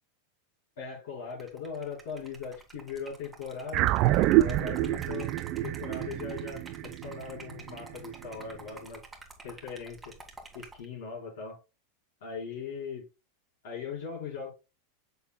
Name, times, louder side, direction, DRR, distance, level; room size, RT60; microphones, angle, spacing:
voice 1, 0.8-3.9 4.4-5.3 5.6-9.0 9.4-10.1 10.5-11.6 12.2-13.0 13.6-14.5, left 6 dB, 65° left, 4.1 m, -39 dB
Liquid, 1.3-10.9, right 3 dB, 10° right, 1.9 m, -50 dB
sound 1, 3.7-8.3, right 16 dB, 50° right, 0.4 m, -27 dB
7.0 x 6.8 x 2.2 m
hypercardioid pair, 90°, 0 cm